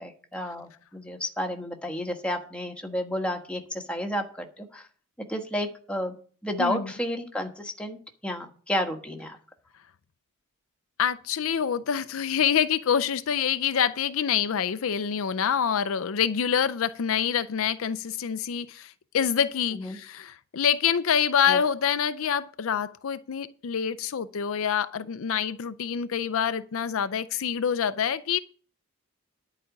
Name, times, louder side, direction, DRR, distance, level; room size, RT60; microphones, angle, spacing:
voice 1, 0.0-4.9 5.3-6.1 6.4-8.0 8.2-9.4 19.7-20.0 21.5-21.6, equal, 5° left, 1.3 m, -31 dB
voice 2, 6.6-6.9 11.0-28.4, left 8 dB, 65° left, 0.5 m, -26 dB
11.0 x 5.0 x 8.4 m
head